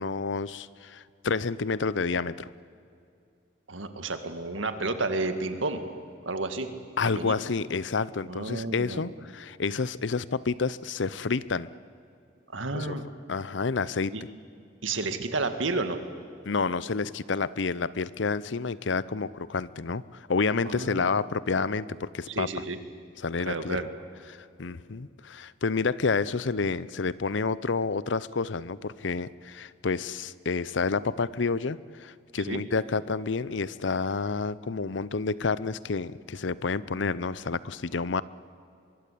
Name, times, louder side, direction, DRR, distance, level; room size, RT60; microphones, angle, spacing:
voice 1, 0.0-2.5 7.0-11.7 12.7-13.0 13.3-14.3 16.5-22.5 23.2-23.8 24.3-38.2, left 4 dB, 70° left, 18 dB, 0.7 m, -29 dB
voice 2, 3.7-5.8 6.2-6.7 7.2-7.4 8.2-9.0 12.5-13.0 14.1-14.2 14.8-16.0 20.7-21.0 22.3-22.8 23.5-23.9 32.5-32.6, right 3 dB, 85° right, 8 dB, 2.0 m, -31 dB
24.5 x 22.5 x 8.5 m, 2.5 s
head